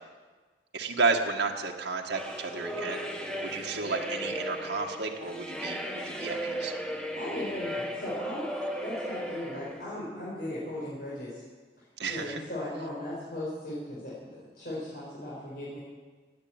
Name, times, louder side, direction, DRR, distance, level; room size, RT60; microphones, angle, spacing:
voice 1, 0.7-3.0 3.4-6.7 12.0-12.4, right 4 dB, 80° right, 1 dB, 1.7 m, -31 dB
sound 1, 2.1-9.9, equal, 5° left, 1.4 m, -36 dB
voice 2, 7.1-11.4 12.1-15.8, left 1 dB, 55° left, -8 dB, 5.0 m, -37 dB
18.0 x 9.0 x 8.9 m, 1.4 s
head